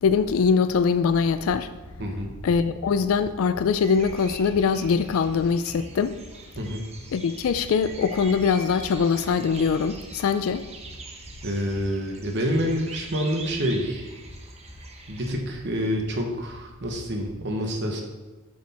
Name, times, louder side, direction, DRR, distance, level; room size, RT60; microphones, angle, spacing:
voice 1, 0.0-1.7 2.4-6.2 7.1-10.7, left 5 dB, 70° left, 0.3 m, -22 dB
sound 1, 1.4-17.3, equal, 10° right, 1.1 m, -47 dB
voice 2, 2.0-2.3 6.6-6.8 11.4-14.1 15.1-18.0, equal, 50° right, 1.0 m, -27 dB
sound 2, 3.8-15.4, right 3 dB, 30° right, 0.9 m, -44 dB
7.8 x 6.3 x 4.2 m
head